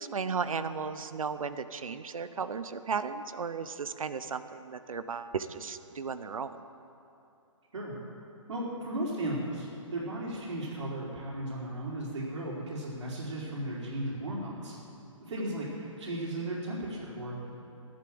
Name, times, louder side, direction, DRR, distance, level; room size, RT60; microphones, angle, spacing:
voice 1, 0.0-6.6 15.4-15.5, right 5 dB, 85° right, 12 dB, 0.9 m, -35 dB
voice 2, 8.5-14.7 15.2-17.5, right 1 dB, 70° right, -8 dB, 4.3 m, -35 dB
13.5 x 11.5 x 7.8 m, 2.8 s
hypercardioid pair, 165°, 17 cm